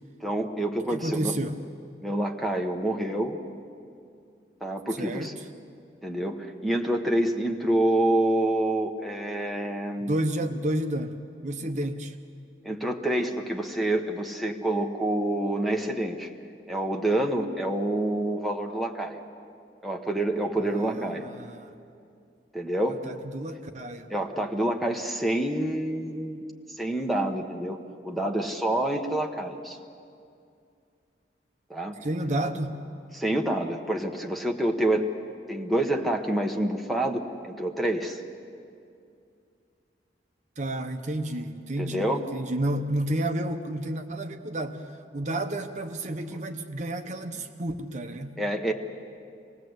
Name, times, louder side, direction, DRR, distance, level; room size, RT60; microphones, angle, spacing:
voice 1, 0.2-1.3 2.0-3.4 4.6-5.3 6.0-10.1 12.6-16.3 16.7-19.2 19.8-21.3 22.5-23.0 24.1-26.4 26.7-27.8 28.0-29.8 31.7-32.0 33.1-35.0 35.5-38.2 41.8-42.3 48.4-48.7, right 1 dB, ahead, 3 dB, 1.1 m, -27 dB
voice 2, 0.9-1.6 4.9-5.3 10.0-11.2 11.4-12.1 20.7-21.7 22.8-24.1 32.0-32.7 40.6-42.0 42.3-44.8 45.1-48.4, right 1 dB, 40° right, 7 dB, 0.9 m, -31 dB
27.0 x 19.0 x 8.0 m, 2.4 s
head